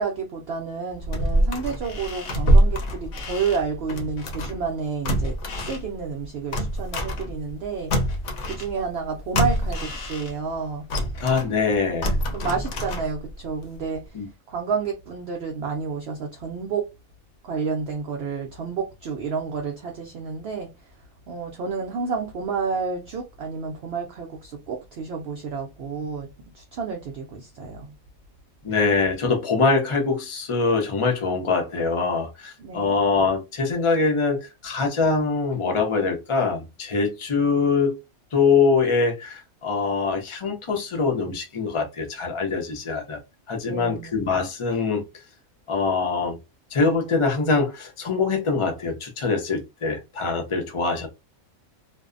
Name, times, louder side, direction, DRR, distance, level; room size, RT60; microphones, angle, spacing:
voice 1, 0.0-8.0 8.4-10.9 12.3-16.9 17.4-21.0 21.3-26.3 26.5-27.9 32.6-33.0 43.7-44.2, right 5 dB, 65° right, 0.6 m, -30 dB
sound 1, 0.9-4.7 5.0-7.6 7.9-10.5 10.9-13.4 13.8-13.9, equal, 65° left, 0.9 m, -25 dB
voice 2, 11.2-12.2 14.1-14.3 28.6-38.0 38.3-43.2 43.5-45.1 45.7-46.4 46.7-51.1, left 4 dB, 40° left, 0.4 m, -23 dB
2.6 x 2.1 x 2.4 m
omnidirectional pair, 1.4 m